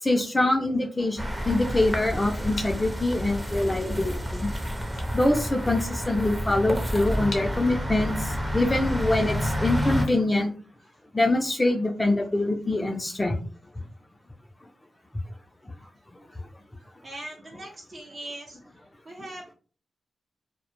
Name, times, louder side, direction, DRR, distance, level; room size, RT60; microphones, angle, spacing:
voice 1, 0.0-4.5 5.1-10.5 11.1-13.4 13.8-13.9, left 2 dB, 25° left, 2 dB, 0.4 m, -24 dB
sound 1, 1.2-10.1, equal, 15° right, 0.6 m, -29 dB
sound 2, 1.9-11.3, left 3 dB, 85° left, 0.4 m, -46 dB
voice 2, 16.8-19.5, right 1 dB, 55° right, -2 dB, 0.6 m, -42 dB
2.1 x 2.0 x 2.9 m, 0.39 s
cardioid pair, 50°, 0 cm